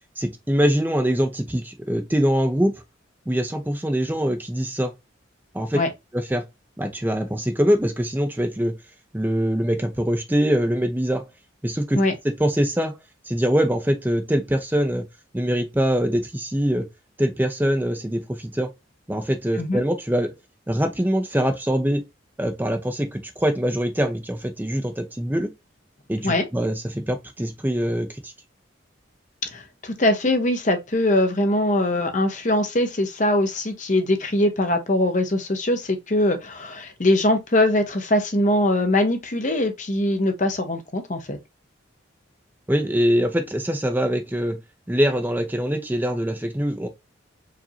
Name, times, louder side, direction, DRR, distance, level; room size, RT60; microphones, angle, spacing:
voice 1, 0.2-2.7 3.3-4.9 5.5-5.8 6.1-6.4 6.8-8.7 9.1-11.2 11.6-12.0 12.4-12.9 13.3-15.0 15.3-16.8 17.2-18.7 19.1-20.3 20.7-22.0 22.4-25.5 26.1-28.3 42.7-44.6 44.9-46.9, equal, 10° right, 0.6 m, -23 dB
voice 2, 29.5-41.4, left 1 dB, 40° left, 0.8 m, -22 dB
4.8 x 2.6 x 2.7 m
head